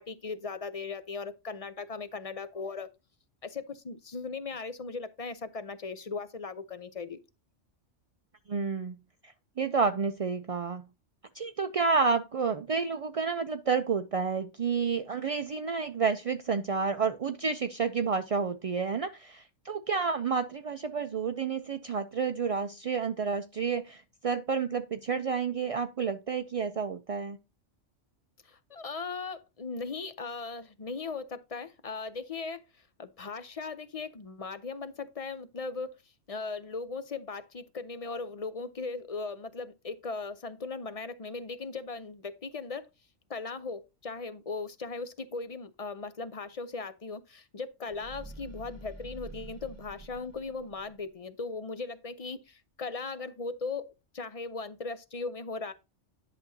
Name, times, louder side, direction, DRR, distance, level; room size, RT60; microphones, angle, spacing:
voice 1, 0.0-2.9 3.4-7.2 28.4-32.6 33.0-35.9 36.3-42.9 43.3-55.7, left 4 dB, 40° left, 0.6 m, -38 dB
voice 2, 8.5-8.9 9.6-10.8 11.3-27.4, right 5 dB, 55° right, 0.3 m, -30 dB
sound 1, 47.8-51.1, right 2 dB, 15° right, 1.0 m, -47 dB
10.5 x 6.1 x 2.7 m
omnidirectional pair, 1.3 m